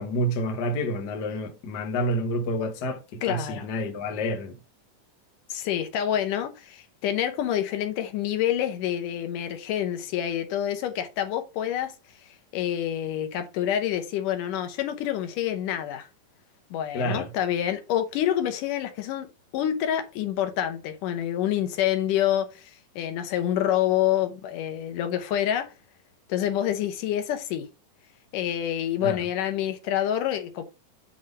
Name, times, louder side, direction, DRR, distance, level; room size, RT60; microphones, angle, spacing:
voice 1, 0.0-4.6 16.9-17.3 29.0-29.2, equal, 60° left, 1.0 m, -29 dB
voice 2, 3.2-3.7 5.5-11.9 12.5-16.1 16.7-25.7 26.3-27.7 28.3-30.6, left 11 dB, 75° left, 2.4 m, -27 dB
7.8 x 3.7 x 5.0 m
omnidirectional pair, 3.9 m